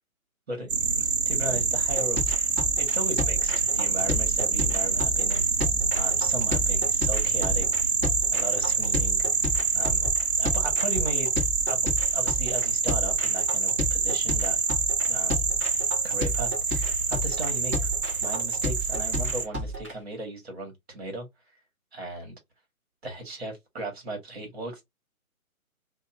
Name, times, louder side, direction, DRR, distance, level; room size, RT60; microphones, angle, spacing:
sound 1, 0.7-19.5, right 5 dB, 70° right, 0.8 m, -26 dB
voice 1, 1.0-2.4 2.8-5.4 5.9-7.7 8.3-10.1 10.4-11.3 11.6-14.6 15.0-15.5 16.0-17.9 18.2-21.3 21.9-22.3 23.0-24.8, right 1 dB, 45° right, 1.6 m, -36 dB
sound 2, 2.0-19.9, equal, 10° right, 0.8 m, -31 dB
3.0 x 2.6 x 2.4 m
figure-of-eight pair, 140°, 44 cm